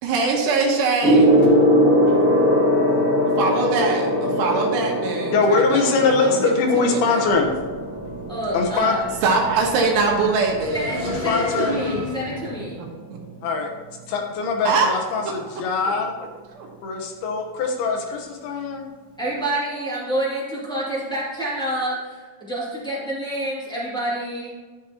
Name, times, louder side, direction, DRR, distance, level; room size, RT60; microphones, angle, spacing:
voice 1, 0.0-1.4 3.4-6.3 6.7-7.2 9.2-10.9 14.7-14.9 16.6-16.7, right 4 dB, 85° right, 0 dB, 3.3 m, -22 dB
Gong, 1.0-10.8 11.7-12.0, equal, 25° right, 2.2 m, -21 dB
voice 2, 5.3-7.5 8.5-8.9 11.0-11.8 13.4-13.7 14.1-16.1 16.8-18.8, left 4 dB, 75° left, 3 dB, 2.9 m, -22 dB
sound 1, 7.2-12.8, left 2 dB, 30° left, 0.9 m, -33 dB
voice 3, 8.3-9.0 10.7-12.8 19.2-24.5, right 1 dB, ahead, -8 dB, 1.0 m, -28 dB
12.5 x 6.5 x 2.9 m, 1.4 s
omnidirectional pair, 4.7 m